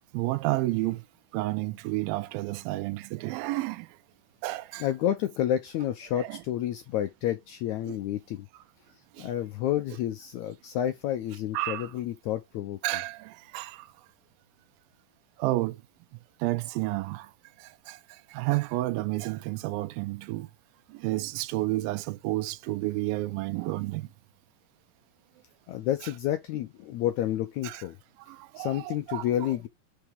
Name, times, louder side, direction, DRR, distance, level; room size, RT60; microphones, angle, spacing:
voice 1, 0.1-1.0 1.3-3.9 4.4-4.9 6.2-6.4 7.9-8.0 9.2-9.3 11.5-11.9 12.8-13.9 15.4-15.8 16.4-17.3 17.9-18.0 18.3-20.5 20.9-24.1 27.6-27.8 28.3-29.3, right 19 dB, 85° right, 2.4 m, -30 dB
voice 2, 4.8-8.5 9.2-12.8 25.7-28.0 28.6-29.7, left 11 dB, 90° left, 1.6 m, -30 dB
5.6 x 4.9 x 3.6 m
omnidirectional pair, 4.1 m